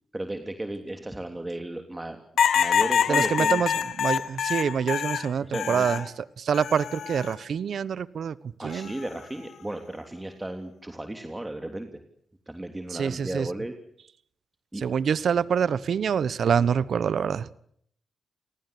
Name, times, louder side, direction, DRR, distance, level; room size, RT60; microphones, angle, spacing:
voice 1, 0.1-2.2 2.5-3.6 5.4-5.9 8.6-11.9 12.5-13.7 14.7-14.8, right 1 dB, 15° right, 6 dB, 3.1 m, -34 dB
sound 1, 2.4-6.1 6.5-7.3 8.7-9.1, left 8 dB, 75° left, 1.6 m, -25 dB
voice 2, 3.1-6.0 6.4-8.3 8.6-8.9 12.9-13.5 14.8-17.5, right 7 dB, 70° right, 19 dB, 1.1 m, -26 dB
29.0 x 19.5 x 8.4 m, 0.68 s
supercardioid pair, 55°, 0 cm